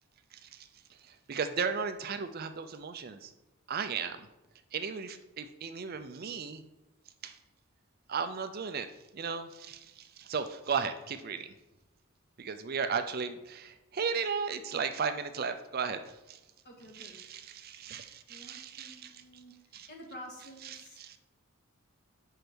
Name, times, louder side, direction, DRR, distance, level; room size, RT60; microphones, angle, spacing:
voice 1, 0.3-3.3 3.7-4.3 4.7-6.6 7.2-7.4 8.1-8.9 9.1-11.5 12.4-16.4 16.9-19.4 19.7-19.9 20.6-21.2, right 6 dB, 45° right, 9 dB, 0.4 m, -36 dB
voice 2, 16.6-17.2 18.3-19.6 19.9-21.0, equal, 50° left, 0 dB, 1.8 m, -49 dB
5.5 x 5.1 x 6.1 m, 1.0 s
head